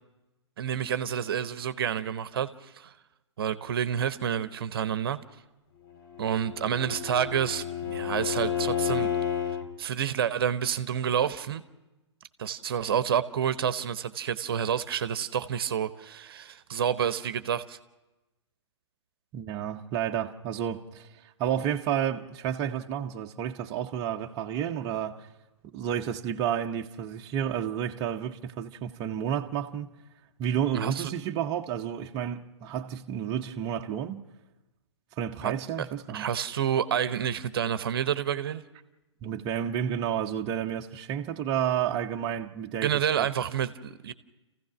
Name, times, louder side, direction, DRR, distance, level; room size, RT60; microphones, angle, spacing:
voice 1, 0.6-2.9 3.4-5.2 6.2-9.1 9.8-11.6 12.4-17.8 30.7-31.1 35.4-35.5 36.1-38.6 42.8-44.1, right 8 dB, 55° right, 0.9 m, -29 dB
Bowed string instrument, 6.0-9.7, left 9 dB, 45° left, 2.0 m, -31 dB
voice 2, 19.3-25.3 25.7-29.9 30.4-34.3 35.2-36.3 39.2-43.3, right 9 dB, 25° right, 0.8 m, -31 dB
28.5 x 15.5 x 6.2 m
figure-of-eight pair, 120°, 15 cm